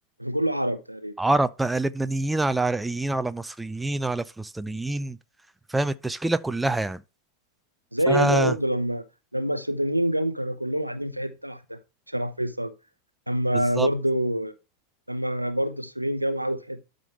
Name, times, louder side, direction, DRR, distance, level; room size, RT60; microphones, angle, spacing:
voice 1, 0.2-1.1 7.9-9.0 9.3-11.8 12.1-12.7 13.3-14.5 15.1-16.9, equal, 90° right, 0.8 m, -26 dB
voice 2, 1.2-5.2 5.7-7.0 8.1-8.5 13.5-13.9, right 2 dB, 5° right, 0.5 m, -26 dB
12.0 x 5.3 x 3.2 m
figure-of-eight pair, 90°, 0 cm